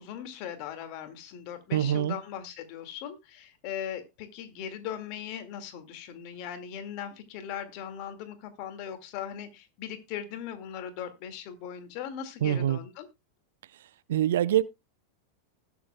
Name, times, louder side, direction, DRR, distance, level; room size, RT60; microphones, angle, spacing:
voice 1, 0.0-13.1, left 9 dB, 45° left, 2.1 m, -39 dB
voice 2, 1.7-2.2 12.4-12.8 14.1-14.6, right 11 dB, 60° right, 0.6 m, -24 dB
19.5 x 7.1 x 2.3 m
figure-of-eight pair, 90°, 0 cm